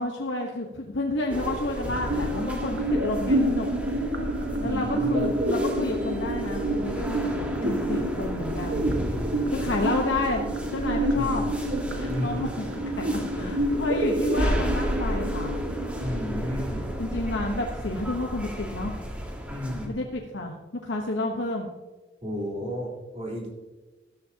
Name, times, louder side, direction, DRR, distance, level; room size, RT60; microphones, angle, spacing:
voice 1, 0.0-3.7 4.6-8.8 9.3-11.5 11.9-15.6 17.0-19.0 19.8-21.7, left 2 dB, 80° left, 1 dB, 1.1 m, -30 dB
Railway station ticket hall Helsinki, 1.3-19.9, equal, 5° right, 1.5 m, -33 dB
sound 1, 1.9-17.9, right 1 dB, 65° right, 1.6 m, -29 dB
voice 2, 4.6-5.3 11.1-11.4 12.1-12.5 13.2-13.5 16.0-16.9 19.5-20.0 22.2-23.5, left 1 dB, 35° right, -3 dB, 3.7 m, -33 dB
13.5 x 13.0 x 2.9 m, 1.2 s
head